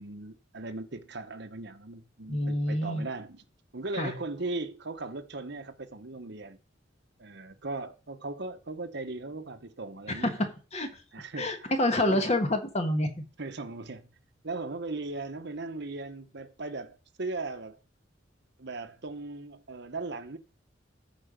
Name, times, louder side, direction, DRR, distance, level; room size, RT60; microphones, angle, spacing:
voice 1, 0.0-3.4 3.7-6.6 7.2-10.5 11.1-11.7 12.0-12.3 13.4-14.1 14.4-17.8 18.6-20.4, right 3 dB, 65° right, 1.2 m, -38 dB
voice 2, 2.3-3.1 4.0-4.2 10.1-10.9 11.4-13.1, left 1 dB, 35° left, 1.6 m, -27 dB
14.5 x 5.0 x 5.2 m
head